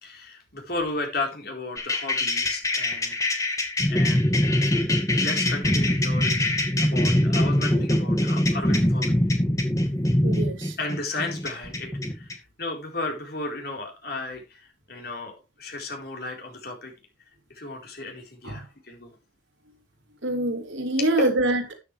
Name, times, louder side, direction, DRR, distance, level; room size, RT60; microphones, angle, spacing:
voice 1, 0.0-3.4 3.9-4.3 4.8-4.9 5.2-6.5 6.8-9.3 10.8-16.9 17.5-19.2 21.0-21.1, left 2 dB, 50° left, 4.4 m, -34 dB
sound 1, 1.8-12.3, left 1 dB, 15° left, 2.2 m, -23 dB
voice 2, 10.2-10.8 18.4-18.6 20.2-21.7, right 1 dB, 85° right, 3.4 m, -25 dB
13.0 x 8.9 x 3.4 m
head